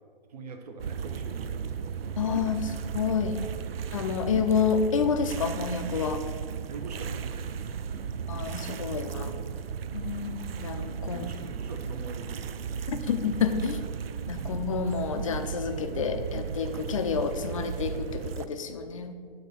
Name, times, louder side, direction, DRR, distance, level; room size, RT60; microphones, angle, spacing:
voice 1, 0.3-2.8 3.4-4.0 6.7-8.2 11.1-13.1 14.4-14.8, right 3 dB, 40° right, 5 dB, 1.0 m, -45 dB
sound 1, 0.8-18.5, right 7 dB, 75° right, 0.5 m, -35 dB
voice 2, 2.2-2.7 2.9-3.4 3.9-6.2 8.3-9.4 9.9-11.3 12.9-13.8 14.3-19.1, left 6 dB, 35° left, 8 dB, 0.5 m, -29 dB
9.0 x 4.0 x 6.7 m, 2.2 s
hypercardioid pair, 160°, 30 cm